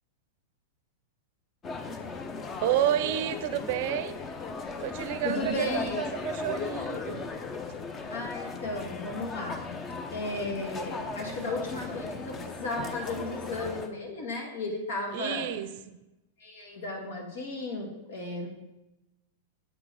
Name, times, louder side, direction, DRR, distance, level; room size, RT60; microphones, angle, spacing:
sound 1, 1.6-13.9, left 4 dB, 25° left, 0.7 m, -37 dB
voice 1, 2.6-4.2 4.8-7.3 11.3-11.4 15.1-16.0, right 11 dB, 60° right, 12 dB, 0.5 m, -30 dB
voice 2, 5.2-6.0 8.1-9.6 10.1-15.4 16.4-18.5, left 2 dB, 75° left, 2 dB, 1.7 m, -34 dB
7.9 x 3.8 x 4.7 m, 0.98 s
hypercardioid pair, 120°, 0 cm